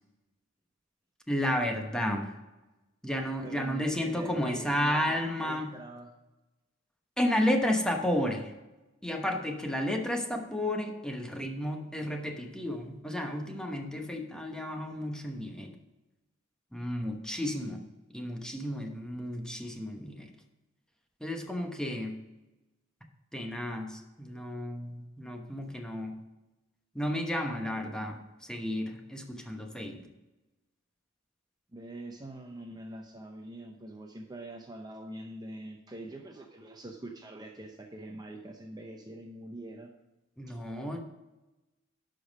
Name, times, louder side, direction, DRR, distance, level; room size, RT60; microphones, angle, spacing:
voice 1, 1.3-2.3 3.0-5.7 7.2-8.5 9.0-15.8 16.7-17.8 18.1-20.3 21.2-22.1 23.3-26.2 26.9-30.1 40.4-41.0, left 1 dB, 5° left, 3 dB, 1.0 m, -32 dB
voice 2, 3.4-6.2 31.7-39.9 40.5-40.6, right 1 dB, 20° right, 2 dB, 0.7 m, -44 dB
11.5 x 5.3 x 5.3 m, 1.0 s
head